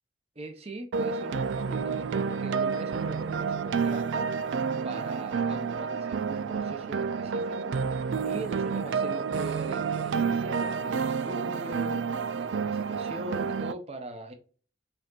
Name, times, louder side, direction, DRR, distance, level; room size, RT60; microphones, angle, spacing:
voice 1, 0.4-4.3 4.8-12.0 12.3-14.3, right 2 dB, 35° right, 5 dB, 0.8 m, -40 dB
sound 1, 0.9-13.7, right 5 dB, 80° right, 0.4 m, -29 dB
5.6 x 2.9 x 2.5 m, 0.39 s
head